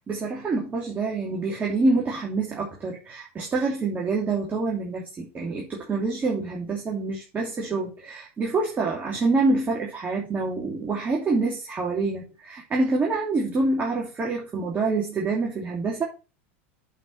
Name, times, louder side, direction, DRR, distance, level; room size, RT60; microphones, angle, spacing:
voice 1, 0.1-16.0, right 3 dB, 25° right, 2.8 m, -26 dB
7.5 x 5.5 x 5.6 m
supercardioid pair, 115°, 7 cm